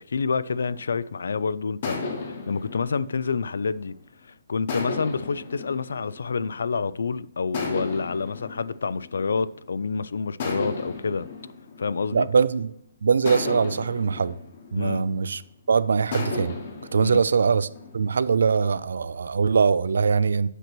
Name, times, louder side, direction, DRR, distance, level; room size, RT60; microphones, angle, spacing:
voice 1, 0.0-2.0 2.3-4.0 4.2-11.3 11.8-12.3 14.8-15.1 17.0-17.2, left 5 dB, 75° left, 0.3 m, -28 dB
sound 1, 0.6-1.2 1.8-4.1 4.7-6.9 7.5-9.8 10.4-12.7 13.3-15.5 16.1-18.4, left 4 dB, 35° left, 1.0 m, -35 dB
voice 2, 12.1-12.7 13.0-14.4 14.7-15.4 15.7-16.6 16.9-17.7 17.9-20.5, right 5 dB, 70° right, 0.3 m, -22 dB
7.9 x 3.0 x 5.9 m
hypercardioid pair, 175°, 0 cm